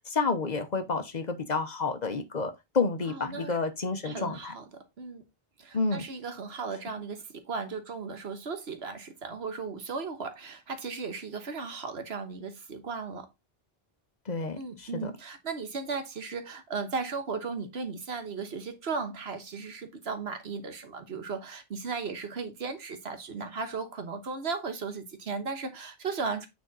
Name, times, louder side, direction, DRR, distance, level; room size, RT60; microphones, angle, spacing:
voice 1, 0.1-4.5 5.7-6.0 14.3-15.1, left 4 dB, 45° left, 1.0 m, -30 dB
voice 2, 3.1-3.6 4.0-5.2 5.6-13.3 14.6-26.5, right 4 dB, 85° right, 1.4 m, -36 dB
9.0 x 3.4 x 3.9 m
omnidirectional pair, 1.0 m